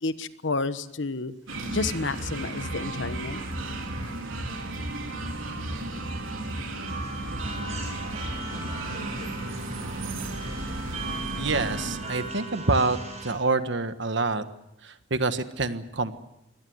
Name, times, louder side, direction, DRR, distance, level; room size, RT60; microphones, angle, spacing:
voice 1, 0.0-1.3 1.7-3.4, left 3 dB, 60° left, 12 dB, 1.2 m, -30 dB
sound 1, 1.5-12.3, right 1 dB, 80° right, 3.7 m, -34 dB
sound 2, 6.8-13.3, right 3 dB, 35° right, 7.8 m, -38 dB
voice 2, 11.4-13.0 13.2-14.4 14.8-16.2, right 3 dB, 60° right, 10 dB, 1.4 m, -26 dB
23.5 x 18.0 x 8.1 m, 0.86 s
head